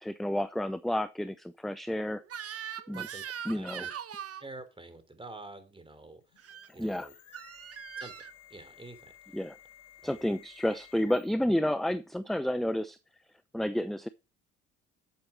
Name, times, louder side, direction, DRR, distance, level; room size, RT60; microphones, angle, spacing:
voice 1, 0.0-2.2 2.9-3.1 3.5-3.9 6.8-7.1 9.3-9.6 10.0-13.0 13.5-14.1, left 1 dB, ahead, 14 dB, 0.6 m, -30 dB
Crying sobbing / Screech, 2.3-4.5 6.4-6.7 7.3-8.3, right 8 dB, 45° right, 1.3 m, -41 dB
voice 2, 3.5-3.9 4.4-7.1 8.0-8.1 8.5-9.4 10.0-10.3, right 2 dB, 15° right, 10 dB, 3.6 m, -48 dB
sound 1, 6.2-11.5, left 11 dB, 65° left, 2.7 m, -55 dB
11.0 x 8.0 x 4.5 m, 0.30 s
hypercardioid pair, 55°, 33 cm